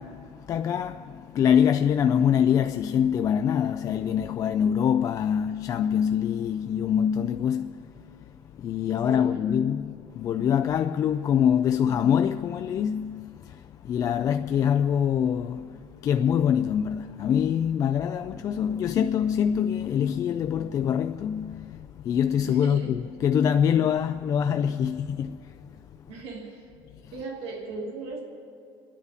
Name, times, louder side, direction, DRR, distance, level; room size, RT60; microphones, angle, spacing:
voice 1, 0.0-26.1, left 8 dB, 35° left, 0.4 m, -25 dB
voice 2, 9.0-9.7 22.5-23.0 26.1-26.7 27.1-28.2, right 3 dB, 70° right, 2.7 m, -37 dB
29.0 x 10.0 x 4.1 m
cardioid pair, 140°, 10 cm